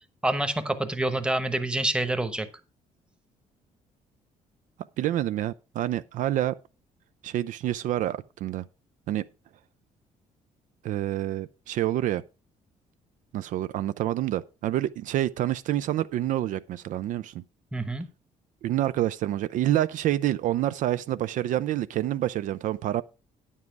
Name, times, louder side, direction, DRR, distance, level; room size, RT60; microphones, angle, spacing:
voice 1, 0.2-2.5 17.7-18.0, right 1 dB, 5° right, 1.0 m, -27 dB
voice 2, 5.0-6.5 7.2-8.6 9.1-9.2 10.8-12.2 13.3-17.4 18.6-23.0, right 13 dB, 65° right, 0.4 m, -27 dB
9.7 x 7.4 x 4.6 m
cardioid pair, 130°, 14 cm